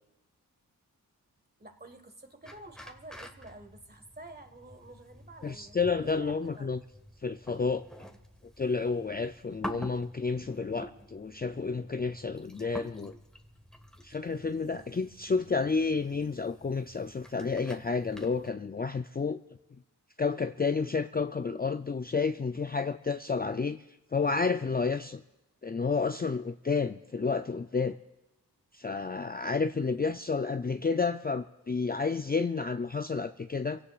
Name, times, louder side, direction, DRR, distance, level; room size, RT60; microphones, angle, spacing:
voice 1, 1.6-6.7 29.8-30.1, right 2 dB, 25° right, 6 dB, 1.6 m, -50 dB
sound 1, 2.4-18.5, equal, ahead, 1.4 m, -48 dB
voice 2, 5.4-6.8 7.2-7.9 8.6-13.1 14.0-19.4 20.2-23.8 24.1-25.2 25.6-28.0 28.7-33.8, left 4 dB, 25° left, 8 dB, 0.5 m, -30 dB
28.0 x 17.0 x 2.5 m, 0.96 s
cardioid pair, 45°, 39 cm